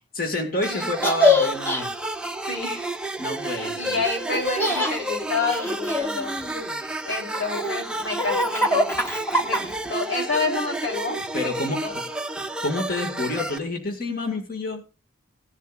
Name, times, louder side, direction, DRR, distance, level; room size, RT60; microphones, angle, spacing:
voice 1, 0.1-1.9 3.2-4.0 11.3-12.0 12.6-14.8, left 2 dB, 45° left, 4 dB, 2.0 m, -28 dB
sound 1, 0.6-13.6, right 1 dB, 5° right, 0.5 m, -31 dB
Laughter, 1.0-1.8 4.3-4.9 5.5-6.8 7.3-9.9, left 2 dB, 10° left, 1.1 m, -23 dB
voice 2, 2.4-2.9 3.4-6.4 6.8-9.0 9.4-11.6 11.8-11.9, left 3 dB, 70° left, 1 dB, 3.8 m, -29 dB
18.5 x 10.5 x 2.5 m, 0.31 s
head